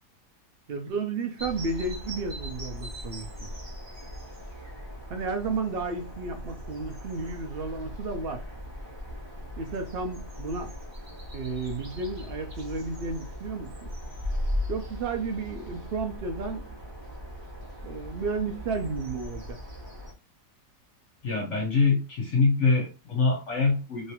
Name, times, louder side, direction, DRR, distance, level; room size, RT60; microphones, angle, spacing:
voice 1, 0.7-3.5 5.1-8.4 9.6-10.7 11.3-13.9 14.7-16.6 17.8-19.6, right 4 dB, 60° right, 0.6 m, -32 dB
sound 1, 1.4-20.1, left 1 dB, 20° right, 0.9 m, -38 dB
voice 2, 21.2-24.1, left 4 dB, 55° left, 1.0 m, -24 dB
3.2 x 2.8 x 2.8 m
omnidirectional pair, 1.8 m